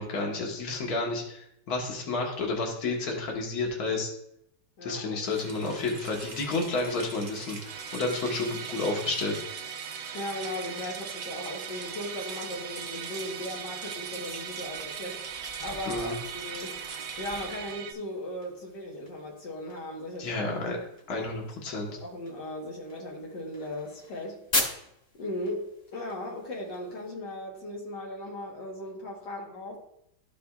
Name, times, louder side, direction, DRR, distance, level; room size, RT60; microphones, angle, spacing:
voice 1, 0.0-4.1 4.8-7.6 7.9-9.4 15.9-16.2 20.2-20.8 21.1-22.0, left 3 dB, 65° left, 0 dB, 1.8 m, -30 dB
voice 2, 4.8-5.2 10.1-16.8 17.2-20.5 21.9-24.4 25.2-29.8, left 1 dB, 80° left, -2 dB, 1.8 m, -37 dB
Rain, 5.2-17.8, right 4 dB, 55° right, 0.4 m, -43 dB
Musical instrument, 7.7-17.9, right 9 dB, 80° right, 1.2 m, -40 dB
sound 1, 15.3-27.1, left 2 dB, 45° left, 1.9 m, -40 dB
12.5 x 5.1 x 2.3 m, 0.77 s
omnidirectional pair, 1.8 m